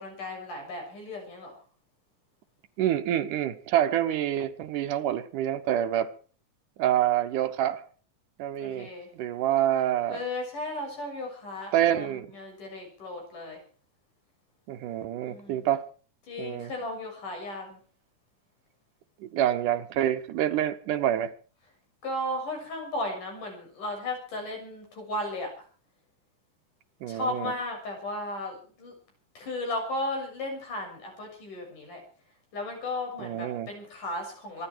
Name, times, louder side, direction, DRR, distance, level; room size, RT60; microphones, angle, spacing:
voice 1, 0.0-1.6 8.6-9.1 10.1-13.6 15.2-15.6 16.3-17.8 22.0-25.5 27.1-28.9 29.3-32.0 32.5-34.7, left 1 dB, 80° left, 8.3 m, -35 dB
voice 2, 2.8-6.1 6.8-7.9 8.4-10.2 11.7-12.3 14.7-15.9 16.4-16.7 19.2-21.3 27.0-27.5 33.2-33.7, right 11 dB, 80° right, 2.7 m, -27 dB
25.5 x 11.0 x 4.7 m
omnidirectional pair, 3.6 m